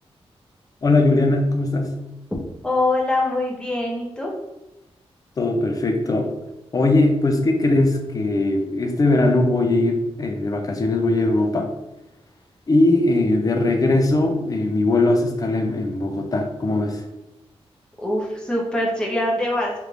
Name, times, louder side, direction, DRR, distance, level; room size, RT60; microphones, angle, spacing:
voice 1, 0.8-2.0 5.4-6.3 6.7-11.7 12.7-17.0, left 2 dB, 35° left, 4 dB, 0.5 m, -20 dB
voice 2, 2.6-4.3 18.0-19.7, left 1 dB, 10° left, -3 dB, 0.7 m, -23 dB
3.2 x 2.5 x 3.1 m, 0.97 s
wide cardioid pair, 135°, 11 cm